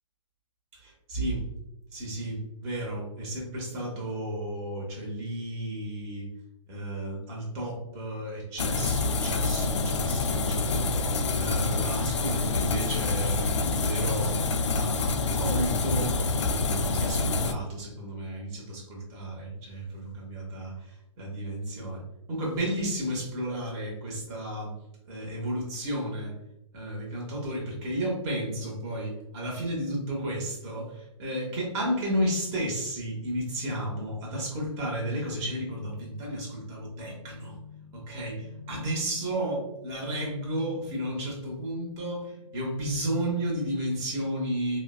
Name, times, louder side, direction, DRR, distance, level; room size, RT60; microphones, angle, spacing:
voice 1, 0.7-1.5 1.9-6.3 6.7-10.9 11.3-14.4 14.7-16.2 16.5-22.0 22.3-24.7 25.1-26.3 26.7-37.6 37.9-44.8, right 1 dB, 20° right, -2 dB, 0.8 m, -33 dB
sound 1, 8.6-17.5, left 3 dB, 65° left, 0.4 m, -27 dB
sound 2, 33.0-44.2, left 4 dB, 75° right, 0.7 m, -51 dB
4.1 x 2.0 x 2.3 m, 0.88 s
hypercardioid pair, 160°, 17 cm